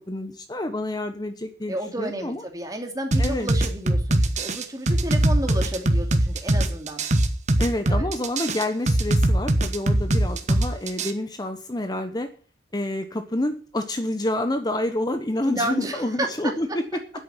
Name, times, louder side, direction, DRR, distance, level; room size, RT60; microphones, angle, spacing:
voice 1, 0.1-2.4 3.2-3.5 7.6-12.3 12.7-16.8, left 1 dB, 25° left, 8 dB, 1.0 m, -28 dB
voice 2, 1.7-7.0 7.9-8.1 15.4-16.3, right 1 dB, 20° right, 3 dB, 2.6 m, -31 dB
sound 1, 3.1-11.1, right 1 dB, 40° right, 1.3 m, -21 dB
10.0 x 8.4 x 9.1 m, 0.42 s
head